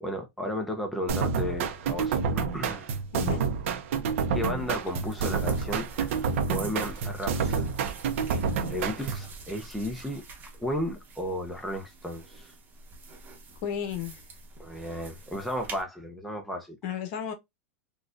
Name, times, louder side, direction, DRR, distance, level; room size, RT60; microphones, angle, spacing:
voice 1, 0.0-2.9 4.3-7.7 8.2-8.4 8.7-10.2 10.6-12.5 14.6-16.8, left 1 dB, ahead, 0.6 m, -34 dB
sound 1, 1.1-9.3, right 5 dB, 65° right, 0.6 m, -29 dB
sound 2, 4.3-15.8, right 3 dB, 25° right, 1.0 m, -45 dB
voice 2, 13.6-14.2 16.8-17.3, left 9 dB, 55° left, 1.0 m, -33 dB
3.9 x 2.3 x 2.5 m
supercardioid pair, 140°, 7 cm